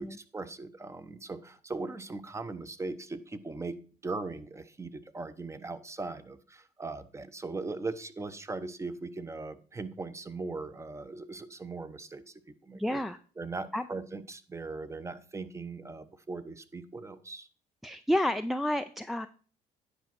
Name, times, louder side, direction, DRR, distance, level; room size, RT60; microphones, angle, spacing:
voice 1, 0.3-3.7 4.0-12.2 12.6-13.0 13.4-17.5, right 3 dB, 15° right, 13 dB, 0.8 m, -39 dB
voice 2, 12.7-13.2 13.7-13.9 17.8-19.3, left 1 dB, ahead, 8 dB, 0.4 m, -30 dB
10.0 x 5.1 x 5.9 m, 0.40 s
cardioid pair, 110°, 17 cm